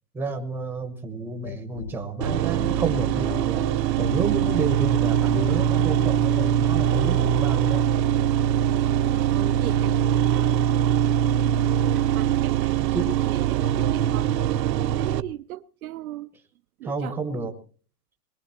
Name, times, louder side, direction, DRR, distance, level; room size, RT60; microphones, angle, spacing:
voice 1, 0.1-3.6 4.0-7.9 12.9-13.1 16.8-17.5, right 3 dB, 5° right, 1.0 m, -30 dB
sound 1, 1.4-7.8, left 8 dB, 40° left, 0.7 m, -37 dB
sound 2, 2.2-15.2, right 10 dB, 75° right, 1.0 m, -22 dB
voice 2, 9.1-10.5 11.9-16.3 16.8-17.2, right 14 dB, 60° right, 0.6 m, -38 dB
22.5 x 20.0 x 2.9 m
hypercardioid pair, 155°, 50 cm